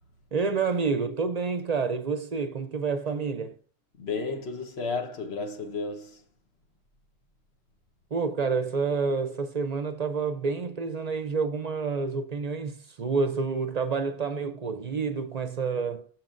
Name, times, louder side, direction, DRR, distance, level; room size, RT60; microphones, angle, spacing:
voice 1, 0.3-3.6 8.1-16.1, right 4 dB, 45° right, 0.6 m, -28 dB
voice 2, 4.0-6.2, left 4 dB, 70° left, 1.3 m, -33 dB
13.5 x 4.5 x 2.5 m
omnidirectional pair, 1.1 m